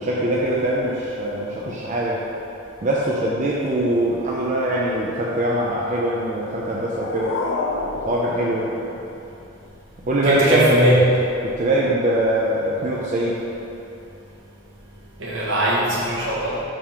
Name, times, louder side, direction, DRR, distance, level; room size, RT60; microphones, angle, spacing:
voice 1, 0.0-2.3 2.8-7.4 8.0-8.7 10.1-10.9 11.4-13.4, right 1 dB, 40° right, -5 dB, 0.5 m, -22 dB
sound 1, 6.5-9.5, left 3 dB, 65° left, 0.4 m, -30 dB
voice 2, 10.2-11.0 15.2-16.6, equal, 70° right, -6 dB, 1.4 m, -19 dB
4.9 x 3.8 x 5.7 m, 2.8 s
head